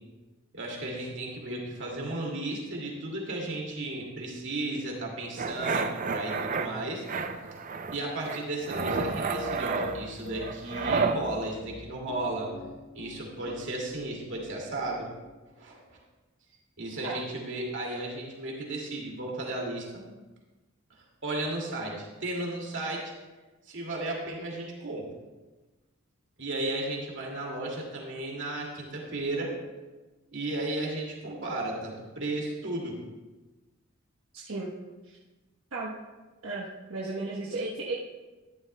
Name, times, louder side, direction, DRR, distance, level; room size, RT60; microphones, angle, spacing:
voice 1, 0.5-7.0 7.9-12.5 12.9-15.1 15.6-16.0 16.8-19.9 21.0-23.1 23.7-25.1 26.4-29.5 30.3-33.0, right 2 dB, 60° right, -2 dB, 2.3 m, -34 dB
sound 1, 5.4-6.7 7.1-8.0 8.3-11.2, right 4 dB, 40° right, 0.5 m, -30 dB
Piano, 8.9-15.3, left 4 dB, 85° left, 0.9 m, -41 dB
voice 2, 34.3-34.7 35.0-35.2 35.7-35.9 36.4-38.0, right 2 dB, 85° right, -4 dB, 1.1 m, -34 dB
13.0 x 11.0 x 2.2 m, 1.2 s
head